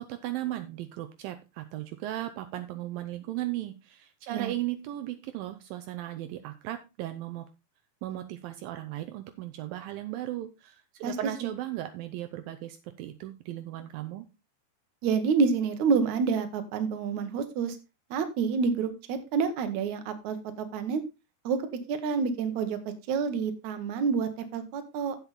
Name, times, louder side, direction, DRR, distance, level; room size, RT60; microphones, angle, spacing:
voice 1, 0.0-7.5 8.0-14.3, right 14 dB, 80° right, 8 dB, 2.3 m, -36 dB
voice 2, 15.0-17.8 18.1-21.0 21.4-21.6 21.9-22.8 23.1-25.2, right 5 dB, 65° right, 9 dB, 2.2 m, -28 dB
8.6 x 8.1 x 4.0 m, 0.27 s
omnidirectional pair, 4.3 m